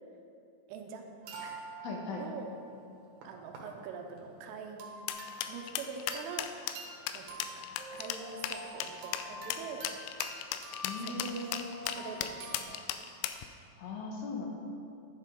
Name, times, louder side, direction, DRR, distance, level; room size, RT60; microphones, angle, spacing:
voice 1, 0.7-1.0 1.4-1.7 2.1-2.6 3.2-5.0 5.5-6.5 7.1-7.7 8.0-9.9 11.0-12.8, right 5 dB, 85° right, 4 dB, 3.2 m, -44 dB
sound 1, 1.2-3.6 4.1-4.3 4.8-6.4 6.7-12.6, right 1 dB, 70° right, 2.8 m, -46 dB
voice 2, 1.8-2.2 10.8-11.6 13.8-14.5, left 3 dB, 75° left, 0 dB, 3.3 m, -38 dB
sound 2, 5.1-13.5, left 11 dB, 90° left, 2.7 m, -36 dB
11.5 x 8.9 x 3.7 m, 2.5 s
omnidirectional pair, 5.9 m